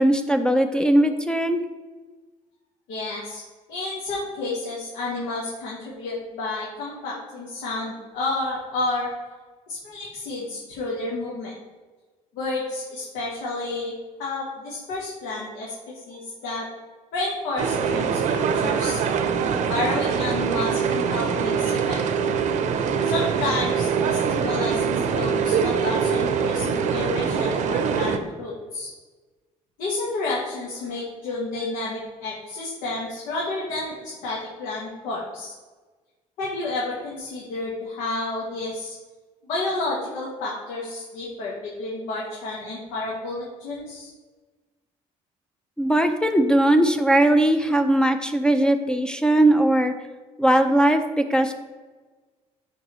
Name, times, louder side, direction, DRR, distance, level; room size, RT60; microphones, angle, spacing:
voice 1, 0.0-1.6 45.8-49.9 50.4-51.5, right 1 dB, 5° left, 6 dB, 0.5 m, -19 dB
voice 2, 2.9-3.4 3.7-9.1 9.7-11.5 12.3-15.7 16.1-16.6 17.1-19.0 19.6-22.0 23.0-28.9 29.8-35.5 36.4-39.0 39.4-41.5 41.8-44.1, left 2 dB, 90° left, -5 dB, 1.5 m, -30 dB
sound 1, 17.6-28.2, right 6 dB, 65° right, 0.7 m, -23 dB
10.5 x 3.6 x 3.1 m, 1.3 s
cardioid pair, 110°, 14 cm